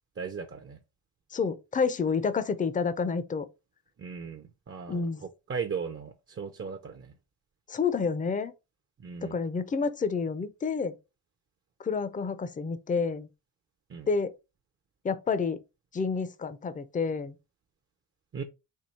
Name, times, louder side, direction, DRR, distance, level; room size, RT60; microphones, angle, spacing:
voice 1, 0.2-0.8 4.0-7.1 9.0-9.4 13.9-14.1 18.3-18.4, right 6 dB, 30° right, 0.5 m, -37 dB
voice 2, 1.3-3.5 4.9-5.2 7.7-8.5 9.2-10.9 11.8-13.3 14.1-14.3 15.0-15.6 15.9-17.4, left 5 dB, 20° left, 0.5 m, -29 dB
4.6 x 2.7 x 4.0 m
cardioid pair, 105°, 43 cm